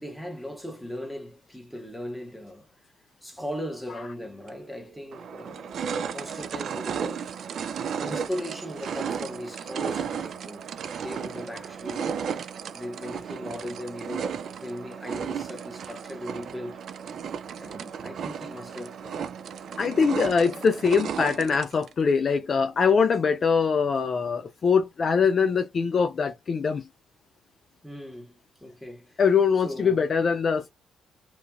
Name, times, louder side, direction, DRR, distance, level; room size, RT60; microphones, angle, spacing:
voice 1, 0.0-2.8 3.2-5.7 6.1-10.6 11.0-12.4 12.7-16.8 17.5-19.3 20.4-20.6 27.8-29.2 29.5-30.1, left 1 dB, ahead, 1.2 m, -38 dB
sound 1, 4.5-4.6 5.1-21.9, right 7 dB, 60° right, 0.3 m, -34 dB
voice 2, 19.8-26.9 29.2-30.7, left 5 dB, 45° left, 0.4 m, -23 dB
2.9 x 2.5 x 2.3 m
cardioid pair, 90°, 0 cm